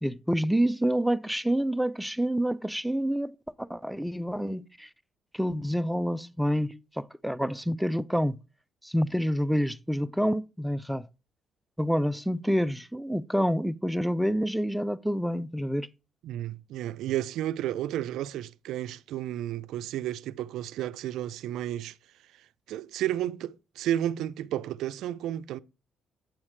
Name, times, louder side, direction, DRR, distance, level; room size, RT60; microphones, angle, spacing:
voice 1, 0.0-4.9 5.3-8.4 8.8-11.1 11.8-15.9, equal, ahead, 0.4 m, -28 dB
voice 2, 16.2-22.0 22.7-25.6, right 12 dB, 85° right, 0.4 m, -32 dB
8.9 x 7.2 x 3.2 m
cardioid pair, 90°, 0 cm